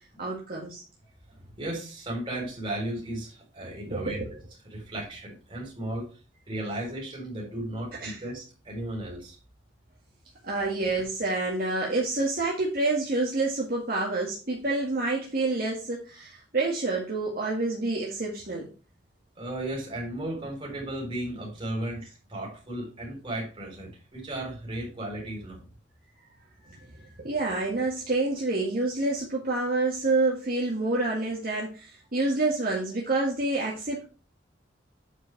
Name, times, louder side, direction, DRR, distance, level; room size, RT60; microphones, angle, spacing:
voice 1, 0.2-0.8 3.9-4.2 8.0-8.2 10.4-18.7 26.7-34.0, right 2 dB, 55° right, -3 dB, 1.9 m, -28 dB
voice 2, 1.6-4.2 4.6-6.1 6.5-9.4 19.4-25.6, right 1 dB, 30° right, -1 dB, 3.9 m, -35 dB
8.8 x 4.9 x 4.6 m, 0.34 s
head